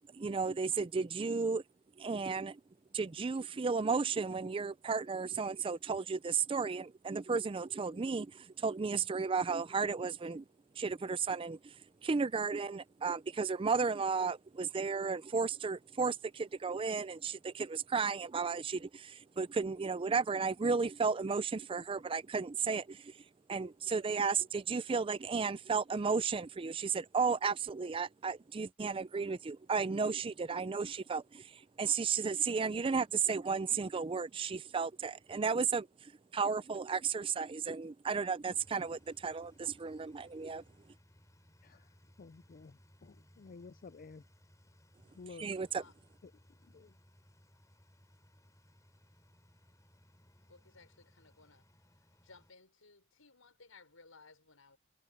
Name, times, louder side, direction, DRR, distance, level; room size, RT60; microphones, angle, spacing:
voice 1, 0.1-1.6 2.0-2.6 2.9-10.4 10.8-11.7 12.0-23.1 23.5-40.6 45.4-45.8, right 5 dB, 25° right, 0.4 m, -34 dB
sound 1, 38.5-52.5, equal, 15° left, 5.3 m, -64 dB
voice 2, 42.2-44.2 45.2-45.4 46.2-46.3 46.7-46.9, left 4 dB, 45° left, 0.4 m, -52 dB
voice 3, 50.4-51.6 52.2-54.8, left 4 dB, 90° left, 5.9 m, -60 dB
head